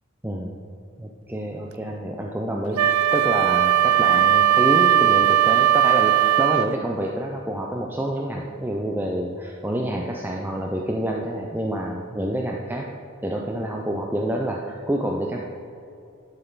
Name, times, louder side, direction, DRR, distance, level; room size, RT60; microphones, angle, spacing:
voice 1, 1.0-12.9 13.2-15.4, right 1 dB, 10° right, -1 dB, 0.4 m, -28 dB
Wind instrument woodwind instrument, 2.8-6.7, right 10 dB, 85° right, 0.4 m, -18 dB
11.0 x 6.5 x 4.0 m, 2.5 s
head